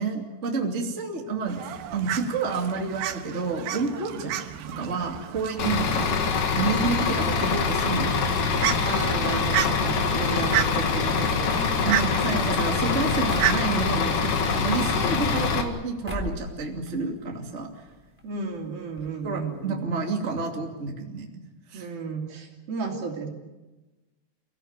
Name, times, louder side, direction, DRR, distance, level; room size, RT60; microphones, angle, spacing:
voice 1, 0.0-1.6 1.9-4.4 4.8-6.1 6.6-8.2 10.2-10.4 11.8-17.7 19.2-21.3 21.7-21.9, right 4 dB, 20° right, 1 dB, 2.2 m, -29 dB
Fowl, 1.5-15.1, right 12 dB, 75° right, 3.0 m, -33 dB
Bus / Idling, 5.6-15.6, left 5 dB, 55° left, 3.3 m, -24 dB
voice 2, 8.8-11.4 18.2-19.8 21.7-23.3, right 4 dB, 60° right, 1 dB, 4.7 m, -33 dB
sound 1, 11.2-14.1 15.0-15.8 16.0-16.5 16.8-17.6 17.9-18.0 18.2-18.3 19.0-19.1 19.4-19.5, equal, 5° right, 2.8 m, -39 dB
29.5 x 17.0 x 8.9 m, 1.2 s
omnidirectional pair, 4.9 m